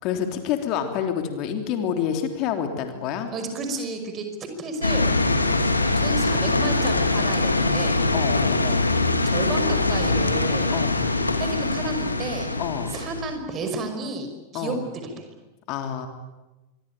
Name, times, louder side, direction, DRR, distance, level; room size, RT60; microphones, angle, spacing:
voice 1, 0.0-3.3 8.1-8.8 10.7-11.0 12.6-12.9 14.5-14.8 15.7-16.1, left 8 dB, 40° left, 6 dB, 3.3 m, -28 dB
voice 2, 3.3-5.1 5.8-8.0 9.3-10.7 11.4-12.5 12.9-15.3, right 3 dB, 30° right, 6 dB, 5.5 m, -32 dB
sound 1, 4.8-13.4, left 2 dB, 80° left, 2.4 m, -23 dB
26.0 x 23.0 x 9.2 m, 1.1 s
figure-of-eight pair, 90°, 0 cm